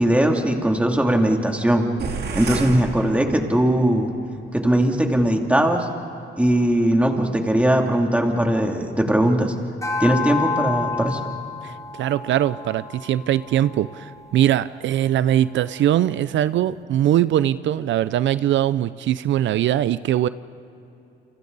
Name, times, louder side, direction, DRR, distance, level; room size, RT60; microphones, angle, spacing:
voice 1, 0.0-1.9 2.3-4.1 4.5-5.9 6.4-9.5 10.0-11.2, right 1 dB, 5° right, 2 dB, 2.8 m, -19 dB
sound 1, 2.0-3.8, right 4 dB, 55° right, 2.6 m, -30 dB
sound 2, 9.8-14.4, left 4 dB, 15° left, 1.7 m, -30 dB
voice 2, 11.6-20.3, right 12 dB, 70° right, 16 dB, 0.6 m, -21 dB
29.5 x 26.5 x 4.1 m, 2.9 s
cardioid pair, 90°, 20 cm